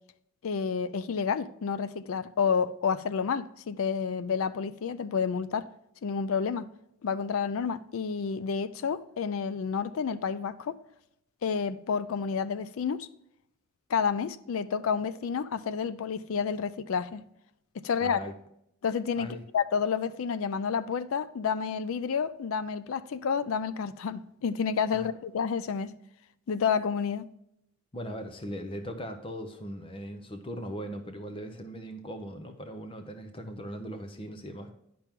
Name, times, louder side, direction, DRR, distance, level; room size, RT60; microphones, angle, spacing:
voice 1, 0.4-5.7 6.0-6.7 7.0-10.8 11.4-13.1 13.9-17.2 17.7-18.3 18.8-26.0 26.5-27.3, left 6 dB, 70° left, 0.4 m, -30 dB
voice 2, 18.0-18.3 19.2-19.4 24.9-25.1 27.9-34.7, equal, 25° left, 0.6 m, -39 dB
10.5 x 5.9 x 3.6 m
head